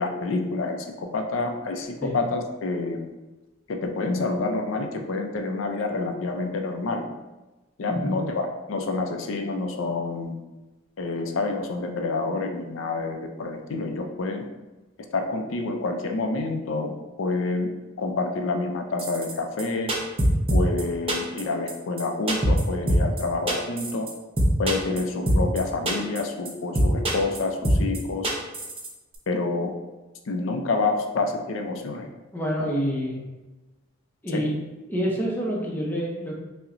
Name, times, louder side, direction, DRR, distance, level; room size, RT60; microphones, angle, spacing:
voice 1, 0.0-3.1 3.7-7.0 7.8-10.4 11.0-14.5 15.1-16.9 17.2-17.7 18.0-19.9 20.5-24.1 24.6-28.3 29.3-29.7 30.3-32.1 32.6-32.7 34.3-34.5, left 3 dB, 80° left, 4 dB, 0.5 m, -28 dB
voice 2, 7.9-8.2 32.3-33.2 34.2-34.6 34.9-36.4, equal, 10° left, -3 dB, 0.6 m, -27 dB
sound 1, 19.0-19.3 19.6-19.7 19.9-20.8 21.1-21.4 21.7-21.8 22.0-22.1 22.3-22.6 22.9-23.2 23.5-24.1 24.4-25.0 25.3-25.6 25.9-26.2 26.4-26.5 26.7-27.4 27.6-28.0 28.2-28.9 29.1-29.2, equal, 30° right, 0.6 m, -22 dB
5.5 x 2.1 x 2.5 m, 1.1 s
head